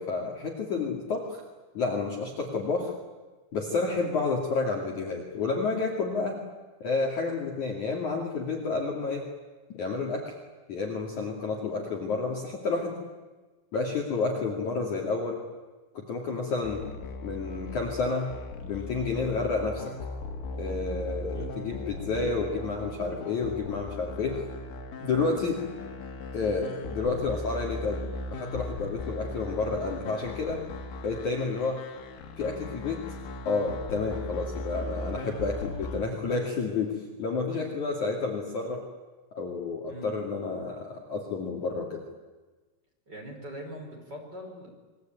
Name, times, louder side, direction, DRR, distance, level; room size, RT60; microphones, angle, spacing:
voice 1, 0.0-1.4 1.8-2.9 3.5-6.4 6.8-9.2 9.7-10.3 10.7-13.0 13.7-15.4 16.0-16.8 17.2-18.3 18.6-19.9 20.6-24.4 25.0-25.6 26.3-28.0 28.3-30.6 31.0-31.8 32.4-33.0 33.5-38.8 39.3-42.0, left 4 dB, 45° left, 0 dB, 3.4 m, -30 dB
sound 1, 16.6-36.0, left 2 dB, 80° left, 4.8 m, -38 dB
voice 2, 43.1-44.7, equal, 20° right, 1 dB, 5.5 m, -41 dB
28.0 x 22.5 x 9.3 m, 1.3 s
omnidirectional pair, 5.7 m